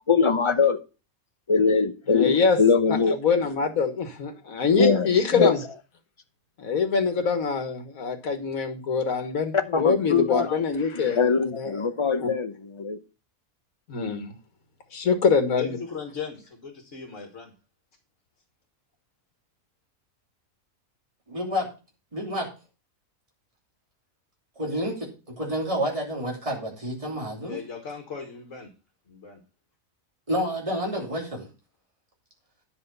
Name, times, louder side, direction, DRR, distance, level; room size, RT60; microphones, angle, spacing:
voice 1, 0.1-0.8 1.5-3.2 4.8-5.5 9.7-10.6 10.9-12.5 12.8-13.0, left 5 dB, 30° left, 0.6 m, -22 dB
voice 2, 2.1-2.6 2.9-5.6 6.6-11.3 11.5-11.9 12.2-12.3 13.9-14.3 14.9-15.8, left 5 dB, 85° left, 1.8 m, -24 dB
voice 3, 15.5-17.5 27.4-28.7 29.1-29.4, left 6 dB, 65° left, 2.0 m, -37 dB
voice 4, 21.3-21.7 22.1-22.5 24.6-27.6 30.3-31.5, equal, 25° right, 3.0 m, -29 dB
10.0 x 5.5 x 5.4 m
omnidirectional pair, 1.4 m